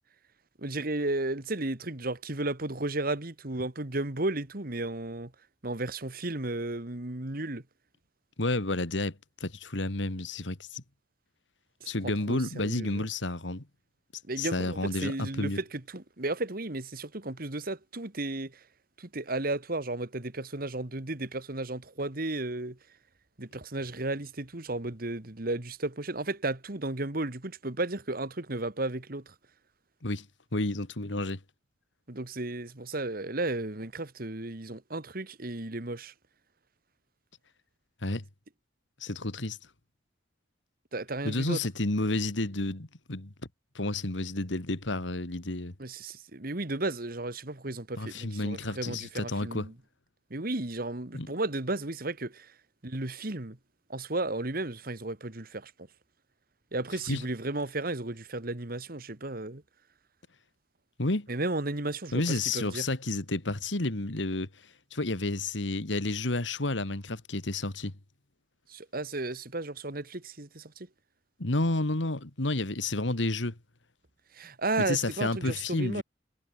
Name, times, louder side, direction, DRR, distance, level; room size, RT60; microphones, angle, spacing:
voice 1, 0.6-5.3 5.6-7.6 11.8-11.9 12.3-13.1 14.2-18.6 19.0-22.8 23.4-29.3 32.1-36.1 40.9-41.6 45.8-49.7 50.3-52.5 52.8-53.6 53.9-55.7 56.7-59.6 61.3-62.9 68.7-70.9 74.3-76.0, right 2 dB, 50° right, 1.9 m, -34 dB
voice 2, 8.4-9.2 9.4-10.8 11.8-13.7 14.4-15.6 30.0-30.3 30.5-31.4 38.0-38.2 39.0-39.6 41.2-43.3 43.7-45.7 48.0-49.7 51.1-51.3 57.1-57.2 61.0-61.3 62.1-64.5 64.9-67.9 71.4-73.6 74.8-76.0, left 2 dB, 75° left, 2.1 m, -30 dB
head